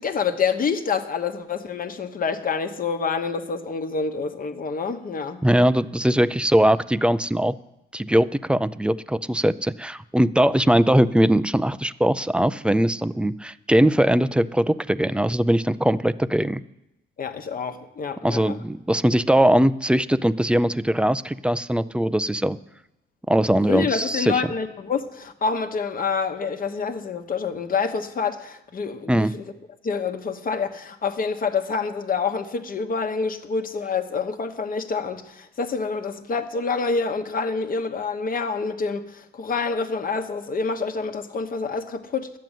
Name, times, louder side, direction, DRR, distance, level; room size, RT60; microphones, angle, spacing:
voice 1, 0.0-5.4 17.2-18.6 23.7-29.5 29.8-42.4, left 5 dB, 45° left, 1.2 m, -27 dB
voice 2, 5.4-7.6 7.9-16.6 18.2-22.6 23.3-24.4 29.1-29.3, right 1 dB, 5° right, 0.4 m, -20 dB
11.5 x 7.6 x 9.1 m
cardioid pair, 90°, 20 cm